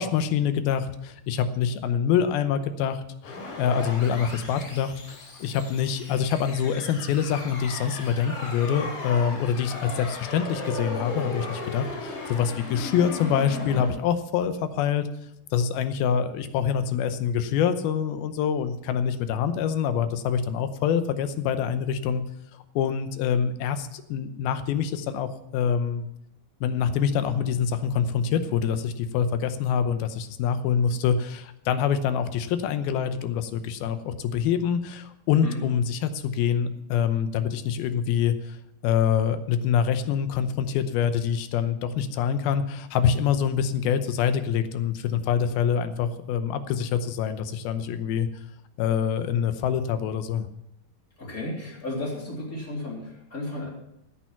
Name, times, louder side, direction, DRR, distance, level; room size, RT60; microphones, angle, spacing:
voice 1, 0.0-15.1 15.5-22.2 22.8-26.0 26.6-38.6 38.8-48.3 48.8-50.5, left 8 dB, 90° left, 10 dB, 2.8 m, -25 dB
sound 1, 3.2-13.9, left 2 dB, 70° left, 5.2 m, -36 dB
voice 2, 51.2-53.7, left 1 dB, 25° left, -2 dB, 3.5 m, -33 dB
14.5 x 9.1 x 5.9 m, 0.80 s
omnidirectional pair, 4.3 m